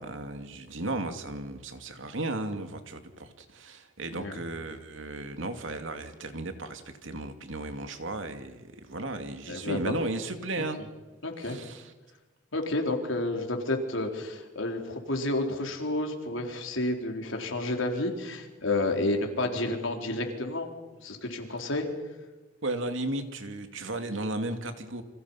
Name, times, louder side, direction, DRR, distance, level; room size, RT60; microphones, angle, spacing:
voice 1, 0.0-10.8 11.4-11.9 22.6-25.0, right 2 dB, 70° right, 7 dB, 2.4 m, -35 dB
voice 2, 9.5-9.9 11.2-11.6 12.5-20.7 21.0-21.9, left 2 dB, 75° left, 2 dB, 4.2 m, -30 dB
30.0 x 25.5 x 5.8 m, 1.2 s
head